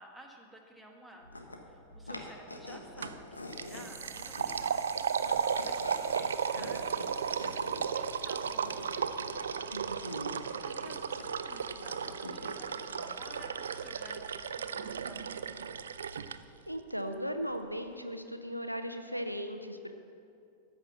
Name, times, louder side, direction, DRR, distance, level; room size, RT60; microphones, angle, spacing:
voice 1, 0.0-9.1 10.6-15.9, right 1 dB, ahead, 0 dB, 1.5 m, -54 dB
sound 1, 1.2-16.6, left 1 dB, 80° left, 1.1 m, -48 dB
sound 2, 3.0-3.2 3.5-16.4, right 7 dB, 65° right, 0.4 m, -35 dB
sound 3, 3.3-9.0 9.2-9.3, right 4 dB, 15° right, 2.0 m, -55 dB
voice 2, 9.7-10.4 16.7-19.9, equal, 90° right, 7 dB, 0.7 m, -37 dB
13.5 x 5.7 x 7.4 m, 2.5 s
figure-of-eight pair, 90°, 0 cm